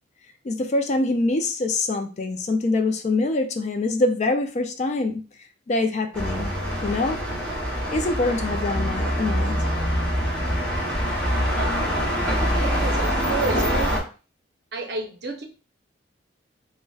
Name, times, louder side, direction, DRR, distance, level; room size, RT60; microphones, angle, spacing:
voice 1, 0.4-5.2 5.7-6.5 6.8-7.2 7.9-9.7, left 2 dB, 35° left, 6 dB, 0.3 m, -24 dB
sound 1, 6.1-14.0, equal, 5° left, 0.7 m, -24 dB
voice 2, 12.5-14.0 14.7-15.4, right 3 dB, 55° right, 3 dB, 0.6 m, -30 dB
3.9 x 2.1 x 2.3 m, 0.35 s
head